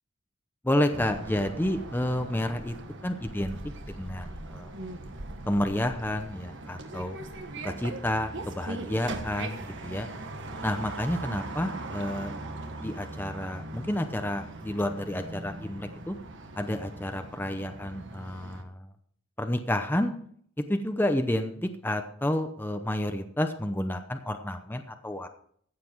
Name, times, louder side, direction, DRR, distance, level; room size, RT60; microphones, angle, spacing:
voice 1, 0.6-2.7 3.0-3.6 4.0-4.7 5.5-7.2 7.6-10.1 10.6-12.3 12.8-16.2 16.6-18.9 19.4-20.1 20.7-25.3, left 1 dB, 10° left, 6 dB, 0.8 m, -30 dB
sound 1, 0.9-18.6, right 2 dB, 65° right, 1.5 m, -40 dB
15.0 x 7.7 x 4.6 m, 0.62 s
head